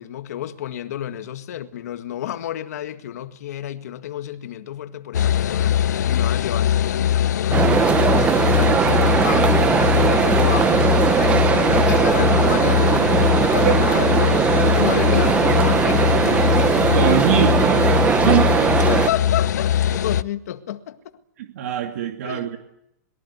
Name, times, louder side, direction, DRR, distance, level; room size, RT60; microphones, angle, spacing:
voice 1, 0.0-16.4 18.8-19.7 20.0-21.0 22.2-22.5, left 11 dB, 65° left, 1.9 m, -30 dB
sound 1, 5.1-20.2, left 10 dB, 90° left, 0.9 m, -21 dB
sound 2, 7.5-19.1, right 7 dB, 15° right, 0.9 m, -19 dB
voice 2, 16.9-17.9 18.3-18.5 21.4-22.6, right 11 dB, 60° right, 2.3 m, -22 dB
27.0 x 22.0 x 8.2 m
supercardioid pair, 165°, 9 cm